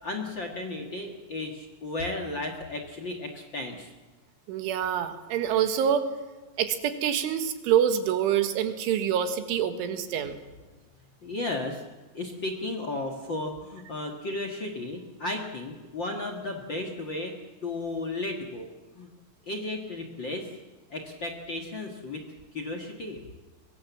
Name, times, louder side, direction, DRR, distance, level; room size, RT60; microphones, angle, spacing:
voice 1, 0.0-3.9 11.2-11.8 12.1-18.7 18.9-19.1 19.4-20.5 20.9-22.2 22.5-23.2, left 2 dB, 60° left, 4 dB, 1.2 m, -34 dB
voice 2, 4.5-6.1 6.6-10.4, right 9 dB, 85° right, 8 dB, 4.1 m, -26 dB
24.0 x 22.0 x 7.4 m, 1.2 s
omnidirectional pair, 5.4 m